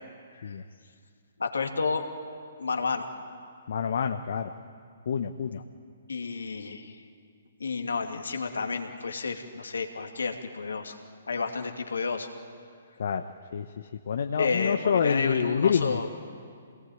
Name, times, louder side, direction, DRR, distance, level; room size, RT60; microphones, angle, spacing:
voice 1, 1.4-2.1 2.6-3.1 6.1-7.0 7.6-11.0 11.3-12.3 14.4-16.1, left 4 dB, 75° left, 4 dB, 2.6 m, -31 dB
voice 2, 3.7-4.5 5.1-5.6 13.0-13.2 13.5-16.1, left 7 dB, 60° left, 7 dB, 1.0 m, -27 dB
26.5 x 19.5 x 9.4 m, 2.2 s
figure-of-eight pair, 130°, 0 cm